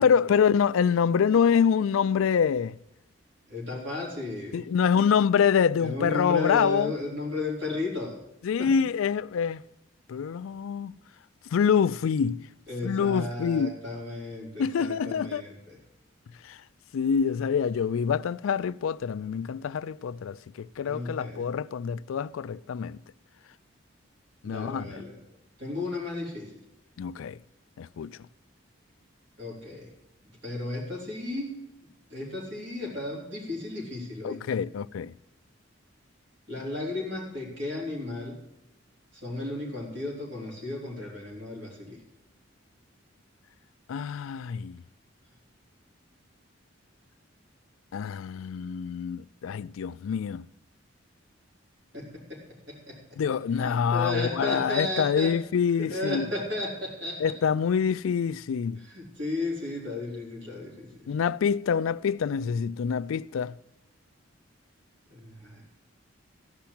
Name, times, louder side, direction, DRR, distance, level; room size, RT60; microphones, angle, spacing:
voice 1, 0.0-2.8 4.5-6.9 8.4-9.6 10.1-11.0 11.5-12.4 12.8-13.8 14.6-15.4 16.4-16.6 16.9-23.0 24.4-25.0 27.0-27.4 27.8-28.2 34.2-35.1 43.9-44.8 47.9-50.5 53.2-56.3 57.2-58.8 61.1-63.6, left 7 dB, 80° left, 0.3 m, -26 dB
voice 2, 3.5-4.7 5.8-8.2 8.6-8.7 12.7-15.8 20.8-21.5 24.4-25.2 25.6-26.5 29.4-29.9 30.4-31.6 32.1-34.6 36.5-38.4 39.1-42.0 51.9-53.2 53.6-55.4 55.8-57.4 58.8-60.9 65.1-65.6, left 2 dB, 60° right, 3.9 m, -34 dB
14.5 x 5.8 x 8.6 m
head